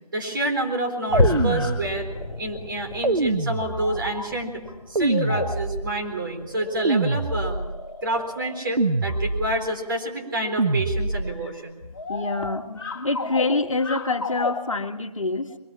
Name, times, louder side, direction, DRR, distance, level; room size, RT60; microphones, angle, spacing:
voice 1, 0.1-2.1 2.4-4.6 4.9-7.6 8.0-11.8, right 1 dB, 35° right, 2 dB, 4.1 m, -28 dB
sound 1, 1.0-2.2 3.7-4.3 4.7-4.8 5.1-5.8 6.4-8.6 9.0-9.2 10.1-10.6 11.3-11.5 11.9-14.8, left 3 dB, 35° left, 2.6 m, -34 dB
sound 2, 1.1-7.7 8.1-8.4 8.8-9.0 9.5-9.6, left 2 dB, 5° left, 0.7 m, -31 dB
sound 3, 1.1-2.3 3.0-4.2 4.9-6.1 6.8-7.9 8.8-9.7 10.6-11.5, right 3 dB, 75° right, 1.2 m, -25 dB
voice 2, 12.1-15.6, left 3 dB, 55° left, 5 dB, 1.7 m, -26 dB
23.0 x 19.5 x 7.2 m, 1.0 s
figure-of-eight pair, 165°, 20 cm